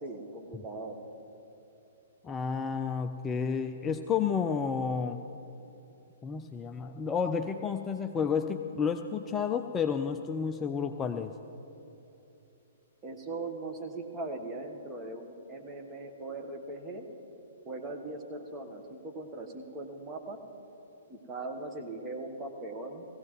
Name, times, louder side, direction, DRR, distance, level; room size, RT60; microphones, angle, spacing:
voice 1, 0.0-1.0 13.0-17.1 17.6-20.4 21.1-23.1, right 2 dB, 20° right, 3 dB, 1.2 m, -40 dB
voice 2, 2.2-5.2 6.2-11.3, left 6 dB, 15° left, 6 dB, 0.4 m, -31 dB
19.0 x 15.5 x 3.1 m, 2.9 s
figure-of-eight pair, 115°, 0 cm